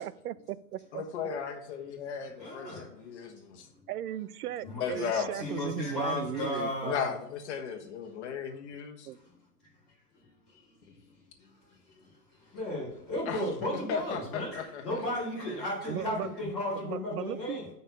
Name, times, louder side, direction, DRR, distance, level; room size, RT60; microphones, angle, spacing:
voice 1, 0.0-1.0 3.9-7.0 9.1-9.2 15.9-16.3 16.8-17.6, right 12 dB, 65° right, 18 dB, 0.5 m, -37 dB
voice 2, 0.9-3.7 4.6-5.3 6.9-9.1 13.2-13.4 13.7-14.8, left 7 dB, 45° left, 4 dB, 1.5 m, -36 dB
voice 3, 2.4-2.9 3.7-3.8 4.6-5.1 5.3-7.1 10.2-11.5 11.9-12.1 12.4-17.7, left 1 dB, ahead, -17 dB, 0.4 m, -35 dB
7.1 x 5.5 x 5.3 m, 0.75 s
hypercardioid pair, 170°, 48 cm